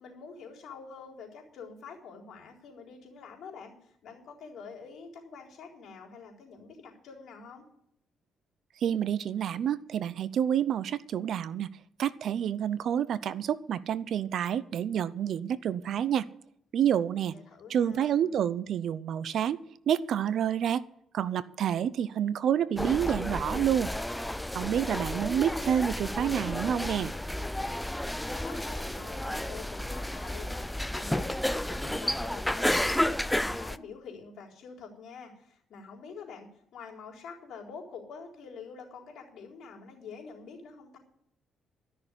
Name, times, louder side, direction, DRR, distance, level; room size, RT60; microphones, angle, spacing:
voice 1, 0.0-7.7 17.1-18.3 24.6-25.1 28.3-41.0, left 5 dB, 70° left, -3 dB, 4.1 m, -46 dB
voice 2, 8.8-11.7 12.0-16.3 16.7-17.3 17.7-19.6 19.9-20.8 21.1-23.9 24.5-27.1, right 9 dB, 65° right, 17 dB, 0.6 m, -28 dB
sound 1, 22.8-33.8, left 1 dB, 5° left, 0.5 m, -32 dB
13.5 x 6.5 x 9.8 m, 0.72 s
cardioid pair, 90°, 0 cm